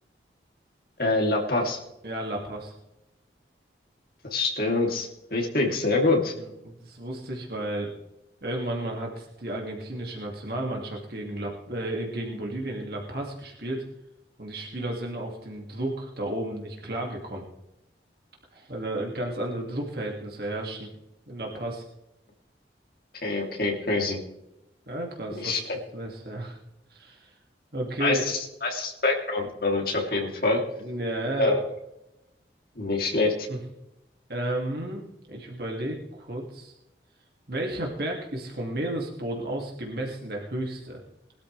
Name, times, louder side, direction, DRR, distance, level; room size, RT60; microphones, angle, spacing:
voice 1, 1.0-1.8 4.3-6.3 23.2-24.2 25.4-25.8 28.0-30.6 31.4-31.6 32.8-33.5, left 2 dB, 55° left, 1 dB, 3.1 m, -25 dB
voice 2, 2.0-2.7 6.4-7.9 8.4-13.8 14.4-17.4 18.5-20.9 21.3-21.8 24.9-25.6 25.9-26.6 26.9-27.3 27.7-28.3 30.8-31.6 33.5-33.6 34.3-36.7 37.5-41.0, right 1 dB, 55° right, -1 dB, 2.5 m, -33 dB
21.0 x 13.0 x 3.4 m, 0.87 s
head